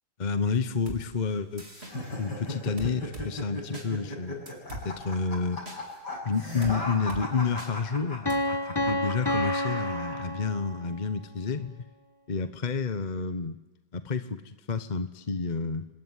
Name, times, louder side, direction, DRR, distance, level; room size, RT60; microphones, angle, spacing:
voice 1, 0.2-4.5 4.8-5.6 6.2-8.6 8.9-11.7 12.3-13.6 13.9-15.9, left 5 dB, 30° left, 11 dB, 0.8 m, -30 dB
sound 1, 0.9-1.0 1.6-1.9 2.8-3.3 3.7-3.9 4.5-4.8 5.7-5.8 6.6-6.8 7.1-7.2 7.6-7.7 8.3-8.4, right 1 dB, 30° right, 4.2 m, -39 dB
sound 2, 1.8-10.3, left 1 dB, 55° left, 7.2 m, -37 dB
Piano, 8.3-11.0, left 1 dB, 15° left, 1.4 m, -29 dB
28.5 x 20.5 x 9.7 m, 1.1 s
omnidirectional pair, 2.2 m